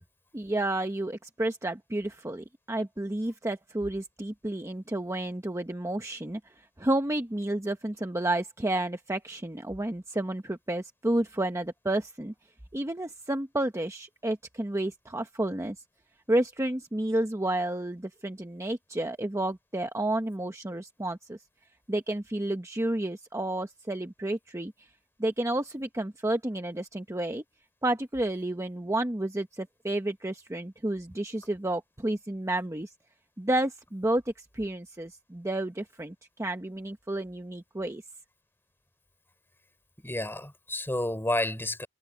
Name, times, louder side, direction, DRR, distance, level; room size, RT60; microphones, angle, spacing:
voice 1, 0.3-12.3 12.7-15.8 16.3-21.4 21.9-24.9 25.2-27.4 27.8-32.9 33.4-38.0, right 1 dB, 15° right, 0.9 m, -31 dB
voice 2, 40.0-41.9, left 1 dB, 10° left, 3.9 m, -30 dB
head